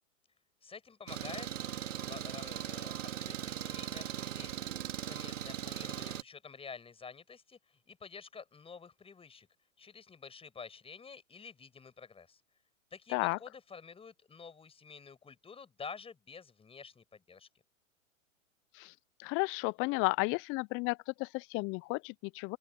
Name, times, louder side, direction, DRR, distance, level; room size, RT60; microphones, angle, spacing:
voice 1, 0.6-1.5 2.0-2.9 3.2-4.7 5.0-9.5 9.8-12.4 12.9-17.5, left 5 dB, 15° left, 6.9 m, -49 dB
Engine, 1.1-6.2, right 10 dB, 65° right, 2.8 m, -39 dB
voice 2, 19.2-22.6, left 27 dB, 30° left, 0.9 m, -33 dB
open air
figure-of-eight pair, 110°, 40 cm